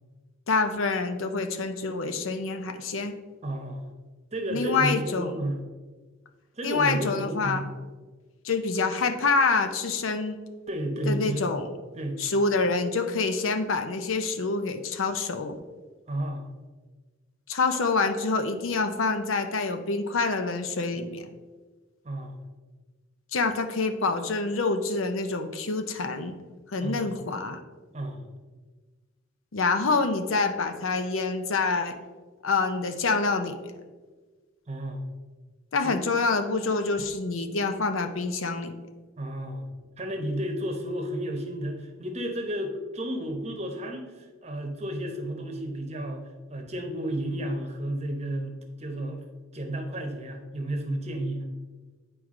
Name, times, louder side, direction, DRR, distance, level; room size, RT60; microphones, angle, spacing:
voice 1, 0.5-3.1 4.5-5.3 6.6-7.6 8.4-10.4 11.0-11.7 12.2-15.5 17.5-21.3 23.3-26.3 26.7-27.6 29.5-32.0 32.4-33.8 35.7-38.7, left 4 dB, 75° left, 8 dB, 0.6 m, -26 dB
voice 2, 3.4-3.9 4.3-5.6 6.5-7.6 10.7-11.5 11.9-12.2 16.1-16.5 22.0-22.4 26.8-27.1 27.9-28.3 34.7-35.0 35.8-35.9 39.2-39.7 40.0-49.2 49.5-51.4, right 1 dB, 30° right, 3 dB, 0.9 m, -32 dB
9.0 x 4.7 x 3.7 m, 1.3 s
head